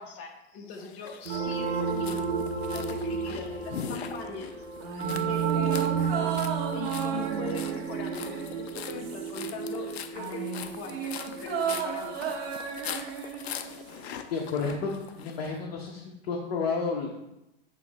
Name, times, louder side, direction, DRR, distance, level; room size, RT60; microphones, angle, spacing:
voice 1, 0.0-2.3 2.7-4.5 5.3-12.2, left 5 dB, 50° left, 2 dB, 1.5 m, -41 dB
sound 1, 0.7-15.5, left 8 dB, 90° left, 0.6 m, -42 dB
sound 2, 1.2-11.7, right 6 dB, 85° right, 0.8 m, -32 dB
sound 3, 4.8-9.6 9.8-14.2 14.4-14.5, right 7 dB, 65° right, 1.4 m, -35 dB
voice 2, 14.3-14.9 15.2-17.1, left 4 dB, 70° left, 0 dB, 1.1 m, -31 dB
7.6 x 3.2 x 4.1 m, 0.89 s
hypercardioid pair, 105°, 31 cm